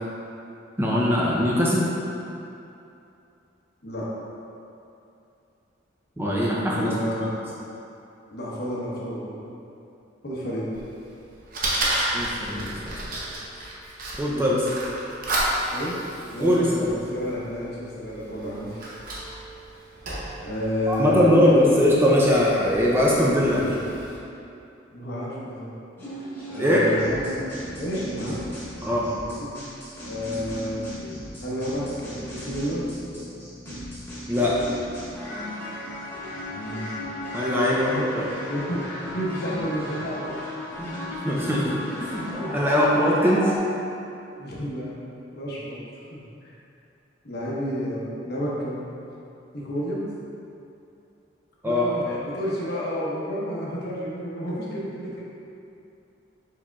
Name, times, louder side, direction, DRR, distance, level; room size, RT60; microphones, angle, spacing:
voice 1, 0.8-1.8 6.2-6.9 12.1-12.9 14.2-14.5 16.4-16.6 20.9-23.8 26.6-26.8 28.8-29.1 34.3-34.6 37.3-38.3 40.8-43.5 51.6-51.9, left 1 dB, 10° right, -5 dB, 0.4 m, -21 dB
voice 2, 6.7-7.3 8.3-9.5 10.2-10.7 14.3-14.4 15.7-16.0 16.3-18.9 20.4-21.7 24.9-25.7 26.5-27.4 27.7-28.4 29.4-29.6 30.0-30.9 31.4-32.9 36.3-37.0 37.8-38.1 38.5-40.4 42.4-42.6 44.4-45.0 45.3-45.8 46.1-46.2 47.2-49.0 49.5-50.1 51.6-55.3, equal, 60° left, -6 dB, 0.9 m, -30 dB
Fire, 10.7-24.2, right 1 dB, 50° right, 0.7 m, -33 dB
sound 1, 26.0-43.6, left 1 dB, 15° left, 0.9 m, -36 dB
4.8 x 4.2 x 2.3 m, 2.7 s
head